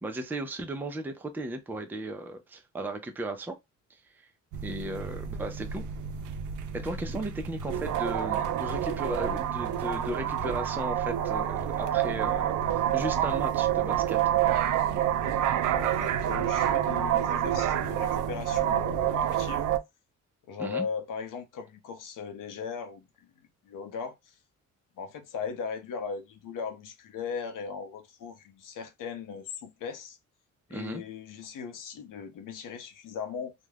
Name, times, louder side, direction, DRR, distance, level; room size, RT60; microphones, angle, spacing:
voice 1, 0.0-3.6 4.6-5.8 6.7-14.2 20.6-20.9 30.7-31.0, right 2 dB, 5° right, 0.4 m, -36 dB
sound 1, 4.5-19.8, right 10 dB, 70° right, 0.5 m, -28 dB
voice 2, 15.7-19.7 20.5-23.3 23.6-24.3 25.0-30.2 30.7-33.5, left 6 dB, 75° left, 0.7 m, -38 dB
2.4 x 2.1 x 3.2 m
cardioid pair, 115°, 32 cm